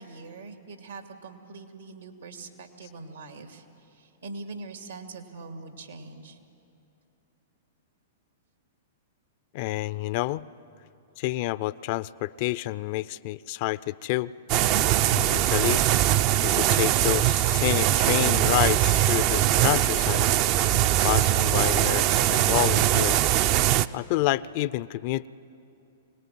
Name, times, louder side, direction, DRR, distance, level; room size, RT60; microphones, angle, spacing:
voice 1, 0.0-6.4, right 3 dB, 80° right, 5 dB, 2.5 m, -43 dB
voice 2, 9.5-10.5 11.2-14.3 15.1-15.8 16.4-20.3 21.0-23.3 23.9-25.3, left 17 dB, 50° left, 18 dB, 0.5 m, -28 dB
sound 1, 14.5-23.9, right 13 dB, 45° right, 0.5 m, -22 dB
25.0 x 19.0 x 9.2 m, 2.8 s
hypercardioid pair, 110°, 0 cm